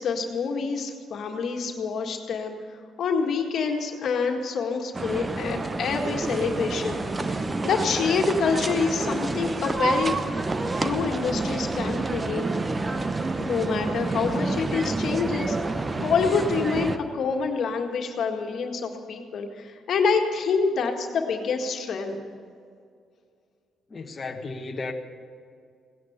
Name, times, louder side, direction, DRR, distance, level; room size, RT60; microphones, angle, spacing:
voice 1, 0.0-10.2 10.8-12.4 13.4-22.2, left 5 dB, 65° left, 2 dB, 1.8 m, -27 dB
sound 1, 4.9-17.0, right 3 dB, 25° right, 0.9 m, -28 dB
voice 2, 23.9-24.9, left 3 dB, 35° left, 3 dB, 1.4 m, -34 dB
17.5 x 10.5 x 8.0 m, 2.3 s
cardioid pair, 90°, 0 cm